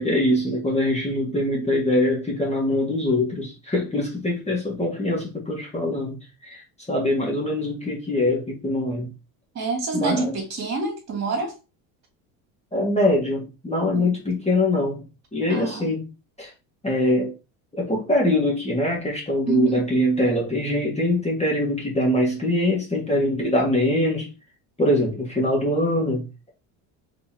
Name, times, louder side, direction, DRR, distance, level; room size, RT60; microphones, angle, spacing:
voice 1, 0.0-9.1 9.9-10.4 12.7-15.1 15.3-16.1 16.4-16.5 16.8-17.3 17.8-24.3 24.8-26.3, left 1 dB, 15° left, 1.9 m, -23 dB
voice 2, 9.5-11.5 13.9-14.1 15.5-15.9 19.5-19.8, right 4 dB, 40° right, 2.7 m, -27 dB
4.4 x 4.1 x 2.9 m
supercardioid pair, 95°, 43 cm